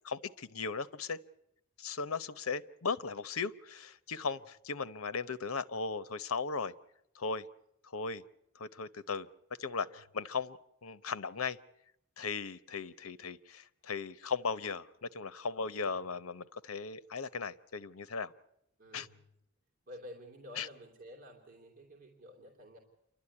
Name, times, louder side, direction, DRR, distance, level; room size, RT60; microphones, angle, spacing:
voice 1, 0.0-1.2 1.8-6.7 7.1-7.5 7.8-8.2 8.6-9.3 9.6-11.6 12.2-18.3 18.9-19.1 20.6-20.7, left 5 dB, 80° left, 15 dB, 0.9 m, -37 dB
voice 2, 9.7-10.0 18.8-19.2 19.9-22.8, equal, 45° right, 1 dB, 2.9 m, -52 dB
28.5 x 12.5 x 9.8 m, 0.79 s
head